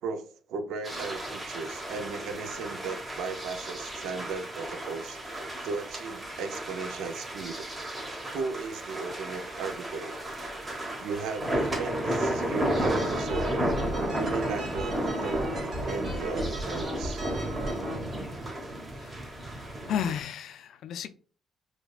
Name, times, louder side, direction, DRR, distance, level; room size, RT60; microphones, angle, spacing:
voice 1, 0.0-5.2 5.6-7.7 8.3-10.2 11.0-13.6 14.1-17.3, right 4 dB, 85° right, 0.5 m, -36 dB
sound 1, 0.8-20.2, right 1 dB, 25° right, 1.1 m, -33 dB
sound 2, 12.8-18.0, right 1 dB, 55° right, 1.6 m, -36 dB
voice 2, 19.9-21.1, left 8 dB, 75° left, 0.4 m, -32 dB
4.8 x 2.2 x 2.3 m
cardioid pair, 90°, 0 cm